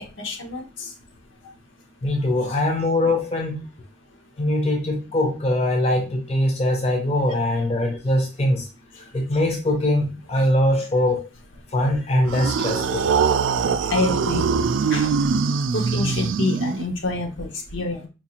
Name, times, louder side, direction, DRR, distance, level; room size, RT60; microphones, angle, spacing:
voice 1, 0.2-0.9 2.4-2.6 13.8-14.6 14.9-15.3 15.7-18.1, left 2 dB, 80° left, 3 dB, 0.8 m, -27 dB
voice 2, 2.0-3.6 4.4-8.7 9.1-11.3 11.7-13.3, left 1 dB, 30° left, 2 dB, 0.5 m, -22 dB
sound 1, 12.3-17.1, right 5 dB, 75° right, 0.3 m, -22 dB
4.4 x 2.4 x 2.8 m, 0.29 s
head